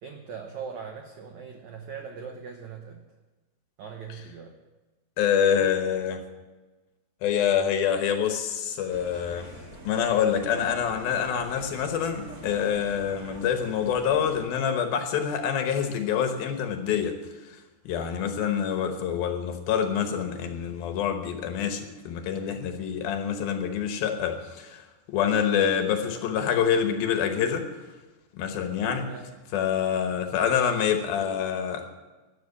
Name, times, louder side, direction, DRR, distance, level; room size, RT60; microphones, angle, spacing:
voice 1, 0.0-3.0 3.8-4.6 29.0-29.3 30.1-30.2, right 6 dB, 75° right, 3 dB, 1.7 m, -40 dB
voice 2, 5.2-6.2 7.2-9.5 9.8-17.2 17.4-17.6 17.9-27.7 28.3-29.1 29.5-31.9, left 8 dB, 70° left, 6 dB, 2.7 m, -26 dB
sound 1, 8.9-14.5, right 2 dB, 40° right, 1.4 m, -44 dB
13.5 x 10.0 x 8.4 m, 1.2 s
omnidirectional pair, 4.9 m